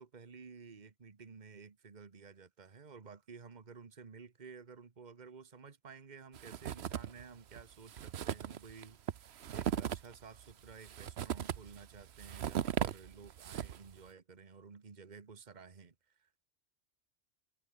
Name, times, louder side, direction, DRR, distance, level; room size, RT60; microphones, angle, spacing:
voice 1, 0.0-16.4, right 5 dB, 40° right, 1.5 m, -53 dB
sound 1, 6.3-7.2 7.5-7.6 7.9-13.9, right 9 dB, 65° right, 1.0 m, -38 dB
omnidirectional pair, 1.2 m